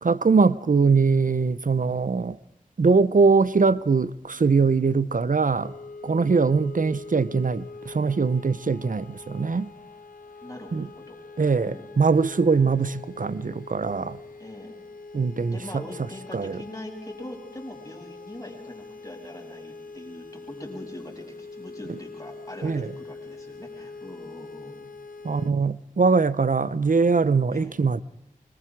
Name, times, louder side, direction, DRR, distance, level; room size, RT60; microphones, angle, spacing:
voice 1, 0.0-2.4 2.8-5.7 6.0-9.7 10.7-10.9 11.4-14.2 15.1-15.6 16.3-16.6 22.6-22.9 25.2-28.0, right 4 dB, 70° right, 0.8 m, -22 dB
sound 1, 5.6-25.5, left 3 dB, 75° left, 1.4 m, -43 dB
voice 2, 10.4-11.2 11.6-12.1 14.4-14.8 15.5-24.9 27.5-27.8, left 1 dB, 25° left, 7.5 m, -42 dB
25.5 x 24.5 x 4.8 m
wide cardioid pair, 55°, 14 cm